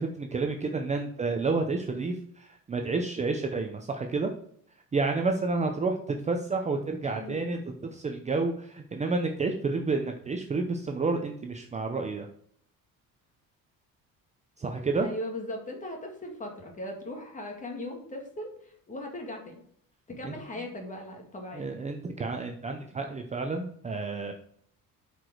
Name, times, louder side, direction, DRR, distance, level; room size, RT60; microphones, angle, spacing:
voice 1, 0.0-4.3 4.9-12.3 14.6-15.1 20.2-20.3 21.5-24.3, right 3 dB, 20° right, 4 dB, 0.7 m, -30 dB
voice 2, 7.0-7.6 15.0-19.6 20.1-21.8, left 1 dB, 20° left, 2 dB, 2.0 m, -39 dB
8.1 x 5.0 x 4.6 m, 0.63 s
cardioid pair, 150°, 34 cm